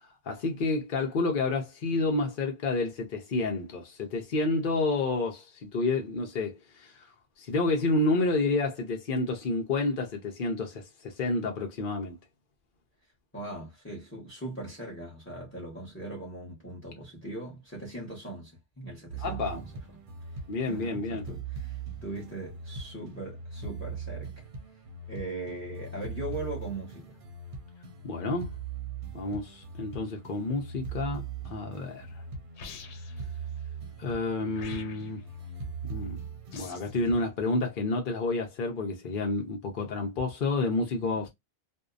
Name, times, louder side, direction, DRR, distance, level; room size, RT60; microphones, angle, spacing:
voice 1, 0.3-7.0 7.4-12.2 19.2-19.6 20.5-21.2 28.0-28.5 29.1-32.1 34.0-35.2 35.9-36.2 36.5-41.3, left 2 dB, 55° left, 0.8 m, -29 dB
voice 2, 13.3-20.0 20.6-24.5 25.1-27.2, right 2 dB, 10° left, 0.9 m, -40 dB
sound 1, 19.1-37.2, right 5 dB, 55° right, 0.8 m, -40 dB
sound 2, 32.6-33.2 34.5-35.2 36.5-37.0, left 5 dB, 85° left, 0.9 m, -45 dB
2.6 x 2.2 x 2.3 m
omnidirectional pair, 1.1 m